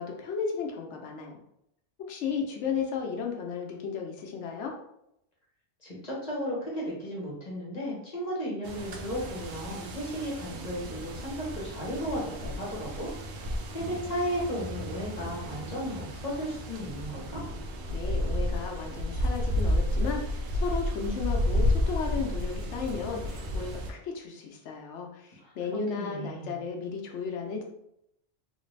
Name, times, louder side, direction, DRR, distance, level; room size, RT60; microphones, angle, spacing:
voice 1, 0.0-1.4 2.1-4.7 17.9-27.6, left 5 dB, 80° left, 1 dB, 1.0 m, -34 dB
voice 2, 5.8-13.1 13.7-17.4 25.4-25.5 25.9-26.6, equal, 35° left, -5 dB, 1.1 m, -34 dB
sound 1, 8.6-23.9, left 1 dB, 70° right, 0.8 m, -32 dB
3.2 x 2.5 x 3.2 m, 0.78 s
omnidirectional pair, 1.2 m